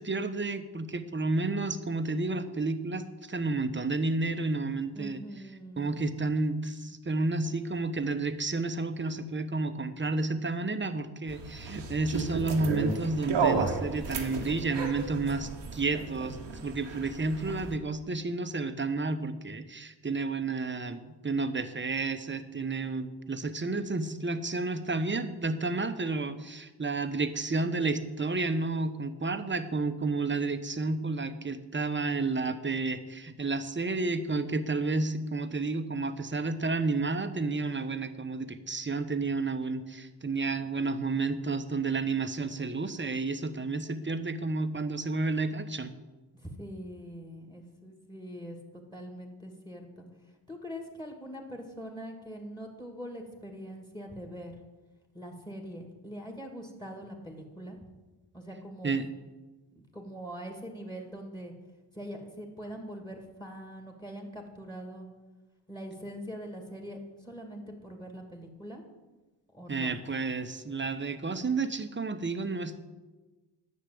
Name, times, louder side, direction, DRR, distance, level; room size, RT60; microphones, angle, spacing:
voice 1, 0.0-5.2 5.8-45.9 58.8-59.1 69.7-72.9, right 3 dB, 25° right, 10 dB, 1.1 m, -31 dB
voice 2, 4.9-6.0 46.4-48.6 48.9-50.1 50.5-54.6 55.1-57.8 58.3-59.0 59.8-61.5 61.9-65.1 65.7-68.8 69.5-69.9, equal, 10° left, 3 dB, 2.5 m, -43 dB
sound 1, 11.3-17.8, right 4 dB, 85° right, 1.5 m, -33 dB
10.0 x 6.6 x 8.6 m, 1.2 s
cardioid pair, 50°, 42 cm